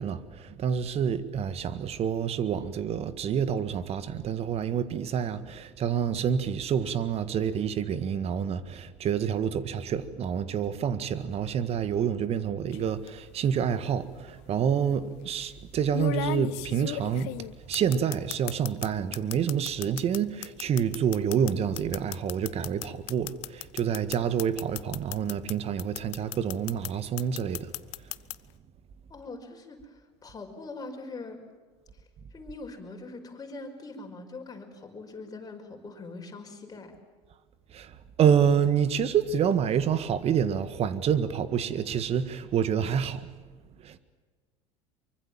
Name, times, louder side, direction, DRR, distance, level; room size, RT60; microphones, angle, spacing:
voice 1, 0.0-27.7 37.7-43.3 43.8-44.0, right 8 dB, 45° right, 1.8 m, -28 dB
sound 1, 12.7-13.1 14.3-14.4 15.9-18.9 19.1-25.5 25.8-26.9 27.2-28.3, left 22 dB, 65° left, 0.8 m, -35 dB
voice 2, 29.1-31.4 31.9-37.0, left 3 dB, 25° left, 5.4 m, -42 dB
24.0 x 24.0 x 7.6 m
hypercardioid pair, 75°, 15 cm